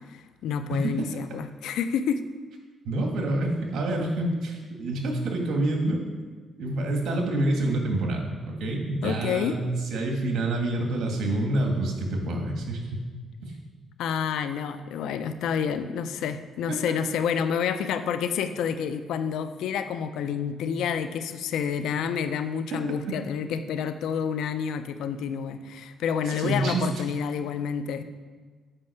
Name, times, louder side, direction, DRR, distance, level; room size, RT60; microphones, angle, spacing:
voice 1, 0.1-2.2 9.0-9.6 14.0-28.0, left 7 dB, 80° left, 10 dB, 0.5 m, -29 dB
voice 2, 2.9-6.0 6.6-9.6 9.9-13.0 13.5-13.6 22.7-22.8 26.3-26.9, right 1 dB, 70° right, 1 dB, 1.8 m, -27 dB
7.4 x 5.4 x 6.5 m, 1.4 s
cardioid pair, 90°, 0 cm